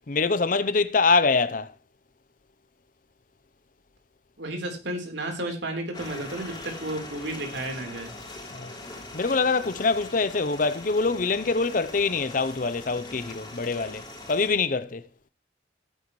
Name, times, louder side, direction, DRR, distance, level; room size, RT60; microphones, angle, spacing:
voice 1, 0.1-1.7 8.5-8.7 9.1-15.0, left 4 dB, 45° left, 0.6 m, -24 dB
voice 2, 4.4-8.1, right 1 dB, 80° right, 3.7 m, -32 dB
sound 1, 5.9-14.5, left 2 dB, 25° left, 3.3 m, -42 dB
16.0 x 9.1 x 3.1 m
head